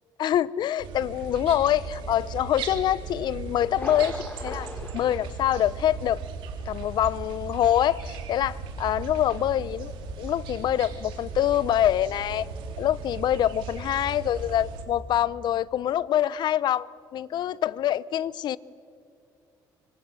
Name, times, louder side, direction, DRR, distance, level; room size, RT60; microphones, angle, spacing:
voice 1, 0.2-6.2 6.7-9.9 10.2-12.5 12.8-16.9 17.1-18.6, left 11 dB, 60° left, 19 dB, 0.7 m, -25 dB
sound 1, 0.8-14.8, right 4 dB, 85° right, 3.4 m, -37 dB
Thunder, 3.7-6.3 6.6-6.7 7.2-7.3, left 2 dB, 20° left, 3.6 m, -40 dB
27.0 x 24.5 x 7.7 m, 2.3 s
cardioid pair, 105°, 8 cm